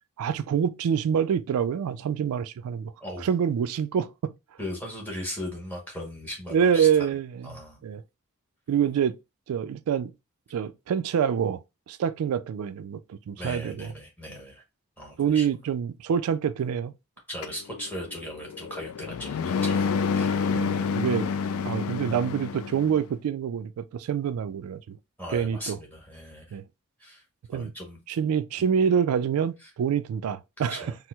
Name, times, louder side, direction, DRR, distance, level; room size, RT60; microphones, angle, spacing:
voice 1, 0.2-2.9 3.2-4.3 6.5-7.6 7.8-8.0 8.7-9.1 9.5-10.1 10.5-13.9 15.2-16.9 20.5-21.3 21.6-25.0 25.3-25.8 26.5-26.6 27.5-27.7 28.1-30.9, right 7 dB, 75° right, 0.3 m, -26 dB
voice 2, 4.6-7.1 7.4-7.8 13.4-14.6 15.0-15.4 17.3-20.4 25.2-26.6 27.0-27.2 27.5-28.0 29.6-29.7 30.7-30.9, equal, 10° left, 0.9 m, -38 dB
sound 1, 17.4-23.0, left 5 dB, 70° left, 0.3 m, -28 dB
4.3 x 2.0 x 2.2 m
head